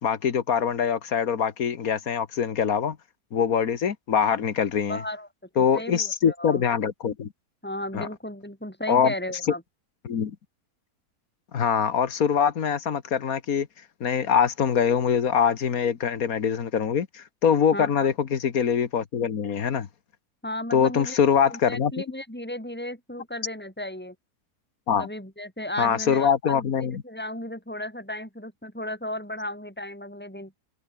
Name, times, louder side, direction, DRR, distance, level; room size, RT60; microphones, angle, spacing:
voice 1, 0.0-3.0 3.3-5.0 5.6-7.3 7.9-8.1 8.9-9.1 10.0-10.4 11.5-13.7 14.0-19.9 20.7-21.9 24.9-25.1 25.8-27.0, left 7 dB, 65° left, 1.8 m, -23 dB
voice 2, 4.9-5.3 5.6-6.6 7.6-9.6 17.7-18.1 20.4-21.2 21.5-24.1 25.0-30.5, left 1 dB, 5° left, 7.6 m, -35 dB
omnidirectional pair, 1.7 m